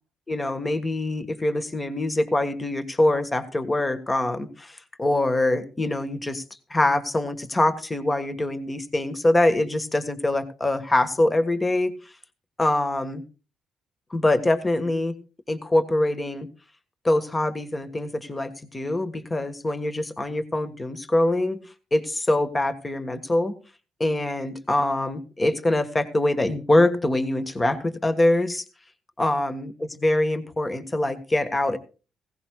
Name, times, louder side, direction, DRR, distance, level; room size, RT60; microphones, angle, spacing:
voice 1, 0.3-6.4 6.7-11.9 12.6-13.2 14.1-15.1 15.5-16.5 17.0-21.6 21.9-23.5 24.0-28.6 29.2-31.8, left 1 dB, 20° left, 11 dB, 1.5 m, -24 dB
16.5 x 16.5 x 2.3 m, 0.33 s
cardioid pair, 90°, 0 cm